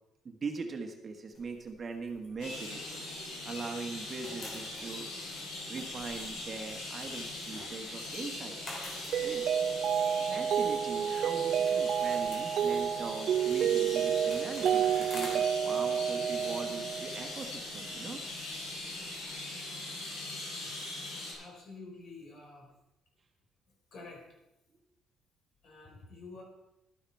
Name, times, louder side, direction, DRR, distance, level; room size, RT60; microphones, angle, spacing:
voice 1, 0.2-3.0 3.4-5.1 5.7-8.6 9.2-9.6 10.2-18.2, right 4 dB, 35° right, 4 dB, 1.4 m, -41 dB
sound 1, 1.3-3.6 3.9-19.3, left 1 dB, 35° left, 3.1 m, -51 dB
sound 2, 2.4-21.3, left 2 dB, 85° left, 4.8 m, -41 dB
Mallet percussion, 9.1-17.3, right 8 dB, 60° right, 0.3 m, -29 dB
voice 2, 21.3-22.7 23.9-24.2 25.6-26.4, left 3 dB, 50° left, 1 dB, 4.0 m, -48 dB
12.0 x 9.7 x 4.5 m, 0.90 s
cardioid pair, 110°, 0 cm